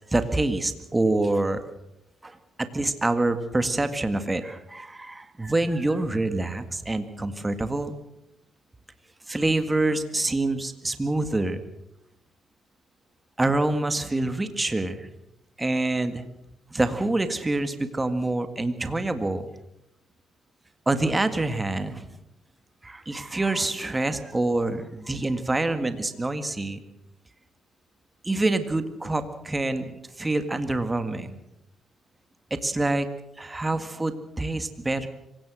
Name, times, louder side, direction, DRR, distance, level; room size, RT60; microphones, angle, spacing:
voice 1, 0.1-1.6 2.2-8.0 9.3-11.6 13.4-15.1 15.6-16.2 16.7-19.5 20.9-22.1 22.8-26.8 28.2-31.4 32.5-33.1 33.4-35.1, right 2 dB, 15° right, 9 dB, 1.9 m, -26 dB
25.5 x 17.0 x 6.3 m, 0.83 s
cardioid pair, 90°, 0 cm